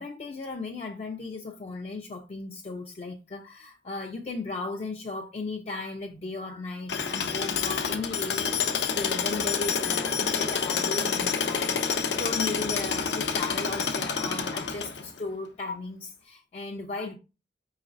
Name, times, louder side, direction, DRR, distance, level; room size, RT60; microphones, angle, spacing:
voice 1, 0.0-17.2, left 3 dB, 35° left, 0.3 m, -36 dB
Tools, 6.9-15.2, left 6 dB, 80° left, 0.6 m, -28 dB
4.8 x 3.1 x 2.5 m
head